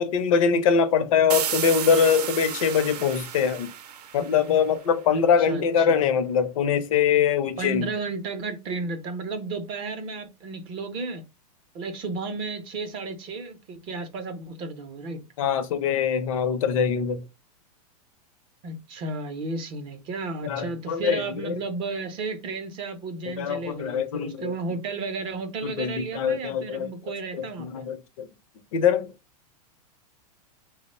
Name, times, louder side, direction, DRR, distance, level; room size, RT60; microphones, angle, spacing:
voice 1, 0.0-3.7 4.1-7.9 15.4-17.2 20.4-21.6 23.3-24.5 25.6-26.9 27.3-28.3 28.7-29.1, left 7 dB, 60° left, 0.6 m, -23 dB
sound 1, 1.3-4.9, right 9 dB, 80° right, 0.6 m, -32 dB
voice 2, 5.1-6.2 7.6-11.3 11.7-15.2 18.6-27.8, right 3 dB, 25° right, 0.5 m, -33 dB
2.9 x 2.1 x 4.1 m
supercardioid pair, 160°, 20 cm